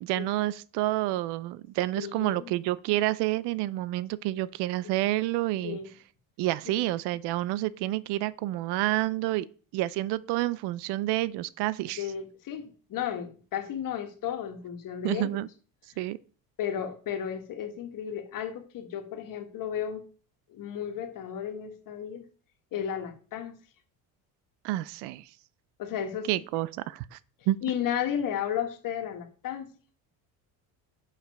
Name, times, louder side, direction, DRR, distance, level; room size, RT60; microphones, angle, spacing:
voice 1, 0.0-5.8 6.4-9.5 9.7-12.0 15.0-15.5 16.0-16.2 24.6-25.3 26.3-27.2 27.5-27.6, right 16 dB, 75° right, 0.6 m, -29 dB
voice 2, 2.0-2.5 4.8-5.0 5.6-5.9 6.6-6.8 12.0-15.4 16.6-20.0 20.5-22.2 22.7-23.6 25.8-26.3 27.6-29.7, left 9 dB, 50° left, 1.6 m, -34 dB
6.5 x 5.8 x 5.3 m
cardioid pair, 130°, 40 cm